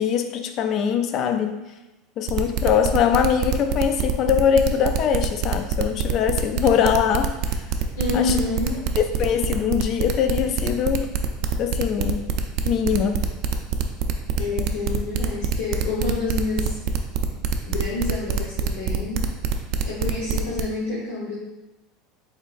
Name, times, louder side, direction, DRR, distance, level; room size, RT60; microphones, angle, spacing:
voice 1, 0.0-1.6 2.2-7.4 8.1-8.4 9.2-11.1 11.6-12.2 12.6-13.2, left 8 dB, 40° left, 7 dB, 0.3 m, -22 dB
sound 1, 2.3-20.6, right 10 dB, 50° right, 0.4 m, -24 dB
voice 2, 8.0-8.8 14.4-16.8 17.6-19.3 19.8-21.4, left 3 dB, 85° left, -5 dB, 1.0 m, -28 dB
5.3 x 4.0 x 2.4 m, 1.0 s
supercardioid pair, 155°, 0 cm